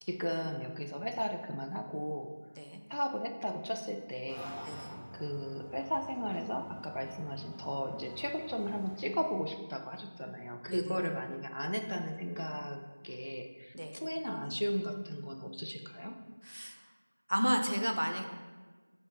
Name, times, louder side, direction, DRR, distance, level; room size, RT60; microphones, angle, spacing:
voice 1, 0.0-2.3 2.9-4.5 5.1-16.2, equal, 75° left, 5 dB, 0.3 m, -36 dB
sound 1, 4.3-9.4, equal, 20° left, 1.0 m, -49 dB
voice 2, 10.7-11.0 13.7-13.9 16.4-16.8 17.3-18.2, equal, 65° right, 4 dB, 0.4 m, -33 dB
3.0 x 2.0 x 3.6 m, 1.4 s
figure-of-eight pair, 175°, 0 cm